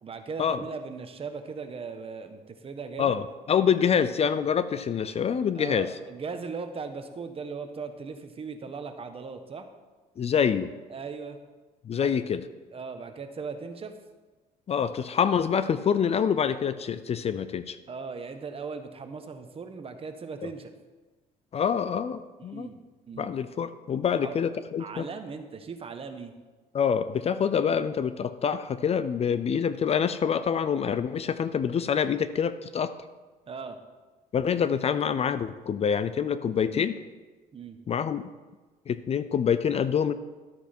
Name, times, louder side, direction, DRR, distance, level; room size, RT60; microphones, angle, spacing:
voice 1, 0.0-3.2 5.5-9.7 10.9-11.4 12.0-12.1 12.7-14.0 17.9-20.7 22.5-22.8 23.1-23.3 24.2-24.4 24.8-26.3 33.5-33.8 37.5-37.8, right 5 dB, 35° right, 7 dB, 1.2 m, -38 dB
voice 2, 3.0-5.9 10.2-10.7 11.9-12.5 14.7-17.8 20.4-20.5 21.5-22.7 23.2-25.1 26.7-32.9 34.3-37.0 37.9-38.2 38.9-40.1, left 7 dB, 40° left, 13 dB, 0.5 m, -26 dB
12.5 x 8.1 x 4.4 m, 1.3 s
cardioid pair, 110°, 17 cm